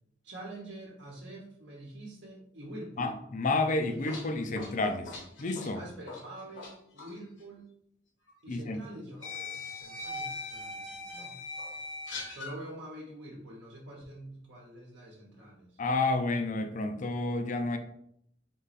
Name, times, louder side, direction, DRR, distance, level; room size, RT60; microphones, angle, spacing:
voice 1, 0.2-3.2 5.7-7.7 8.4-11.4 12.3-15.8, right 1 dB, 65° right, -3 dB, 1.0 m, -46 dB
voice 2, 3.0-5.8 8.5-8.8 15.8-17.8, left 2 dB, 45° left, 7 dB, 0.5 m, -30 dB
sound 1, 3.7-6.7 7.0-7.2 8.3-8.4 9.2-12.5, left 3 dB, 70° left, 1.1 m, -40 dB
3.8 x 3.0 x 4.1 m, 0.71 s
head